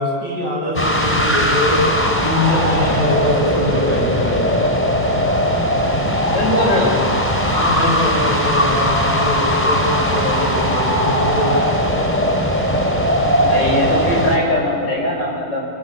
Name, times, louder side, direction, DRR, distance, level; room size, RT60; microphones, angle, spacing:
voice 1, 0.0-1.8 2.2-4.5 7.5-11.7, left 1 dB, 80° right, -3 dB, 8.7 m, -22 dB
sound 1, 0.8-14.4, equal, 5° left, 3.0 m, -18 dB
voice 2, 6.3-7.0 13.4-15.7, left 1 dB, 85° left, -1 dB, 6.7 m, -20 dB
29.0 x 24.5 x 7.7 m, 2.5 s
omnidirectional pair, 1.9 m